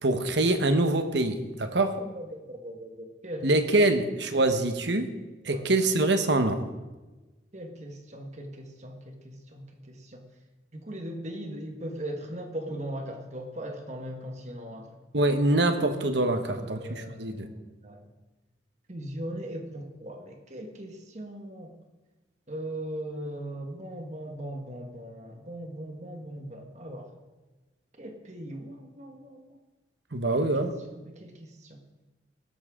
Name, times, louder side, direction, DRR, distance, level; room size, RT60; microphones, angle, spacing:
voice 1, 0.0-2.0 3.4-5.1 5.4-6.6 15.1-17.5 30.1-30.7, right 2 dB, 65° right, 7 dB, 1.2 m, -24 dB
voice 2, 1.9-3.5 3.9-4.0 4.3-4.5 5.4-5.7 7.5-10.2 10.7-15.0 16.3-18.1 18.9-21.7 22.5-27.2 27.9-29.6 30.4-30.5 30.8-31.8, right 1 dB, 35° right, 4 dB, 1.5 m, -39 dB
17.5 x 13.0 x 3.8 m, 1.2 s
head